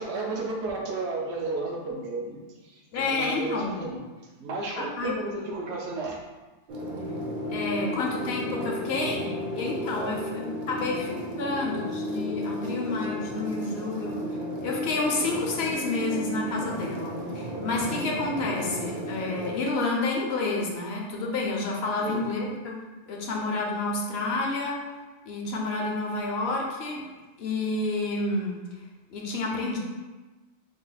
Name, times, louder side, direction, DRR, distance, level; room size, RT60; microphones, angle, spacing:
voice 1, 0.0-4.0 4.4-6.2 9.9-10.2 22.0-22.3, right 3 dB, 80° right, -1 dB, 0.9 m, -33 dB
voice 2, 2.9-3.7 4.8-5.1 7.5-22.8 23.1-24.8 25.3-27.0 27.4-28.6 29.1-29.8, left 3 dB, 70° left, 0 dB, 0.8 m, -29 dB
sound 1, 6.7-19.5, equal, 55° right, 0.7 m, -33 dB
2.8 x 2.3 x 3.9 m, 1.2 s
omnidirectional pair, 1.1 m